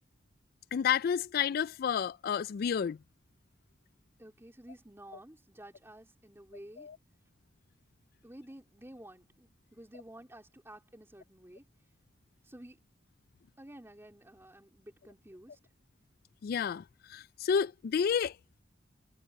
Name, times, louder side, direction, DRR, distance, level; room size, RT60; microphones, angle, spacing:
voice 1, 0.7-3.0 6.8-6.9 16.4-16.8 17.1-18.3, left 7 dB, 55° left, 0.3 m, -30 dB
voice 2, 4.2-6.9 8.2-11.6 12.4-12.8 13.6-15.6, right 1 dB, 15° right, 3.4 m, -52 dB
head